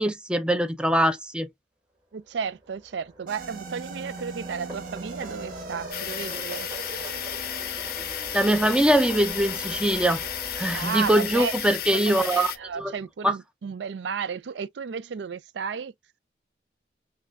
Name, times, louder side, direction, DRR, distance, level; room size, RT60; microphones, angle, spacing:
voice 1, 0.0-1.5 8.3-10.2 10.6-12.5 12.8-12.9 13.2-13.4, right 1 dB, 5° right, 0.4 m, -22 dB
voice 2, 2.1-6.7 10.7-11.5 11.9-15.9, right 6 dB, 80° right, 0.4 m, -33 dB
sound 1, 2.3-13.0, right 1 dB, 25° right, 1.5 m, -43 dB
sound 2, 3.3-11.8, right 3 dB, 50° right, 1.0 m, -42 dB
sound 3, 5.9-12.6, left 11 dB, 60° left, 0.5 m, -33 dB
5.8 x 2.2 x 2.2 m
head